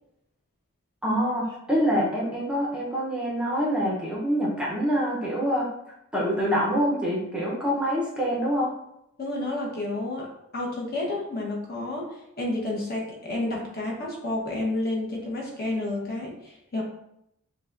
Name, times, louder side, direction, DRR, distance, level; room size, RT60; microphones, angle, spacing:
voice 1, 1.0-5.7 6.1-8.7, equal, 5° right, -5 dB, 0.6 m, -25 dB
voice 2, 9.2-16.8, left 2 dB, 45° left, -2 dB, 0.9 m, -30 dB
6.5 x 2.2 x 2.5 m, 0.80 s
head